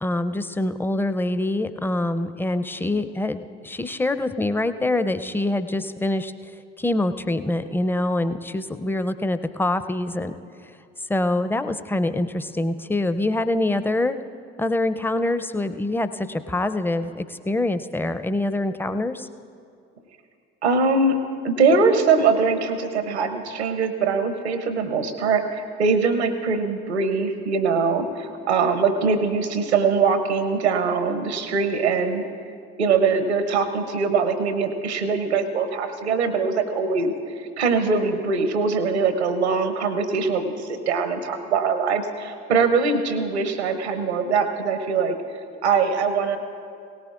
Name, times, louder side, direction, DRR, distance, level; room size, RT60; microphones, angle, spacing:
voice 1, 0.0-6.3 6.8-10.3 11.1-14.2 14.6-19.3, left 2 dB, 5° left, 11 dB, 0.5 m, -25 dB
voice 2, 20.6-21.2 21.4-32.2 32.8-45.2 45.6-46.4, right 4 dB, 80° right, 9 dB, 0.8 m, -22 dB
18.0 x 17.0 x 2.4 m, 2.3 s
figure-of-eight pair, 50°, 33 cm